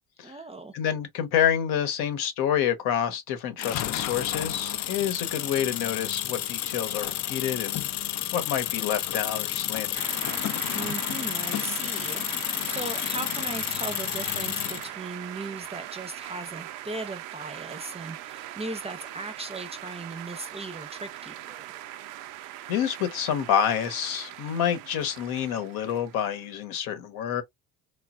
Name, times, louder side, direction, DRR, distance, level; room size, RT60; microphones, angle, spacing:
voice 1, 0.2-0.7 10.7-21.7, right 2 dB, 15° right, 0.5 m, -38 dB
voice 2, 0.7-7.8 8.3-10.0 22.7-27.4, left 9 dB, 75° left, 0.9 m, -28 dB
sound 1, 3.6-14.9, left 12 dB, 45° left, 0.4 m, -31 dB
sound 2, 9.9-26.6, right 13 dB, 85° right, 0.5 m, -41 dB
3.1 x 2.2 x 2.3 m
supercardioid pair, 75°, 39 cm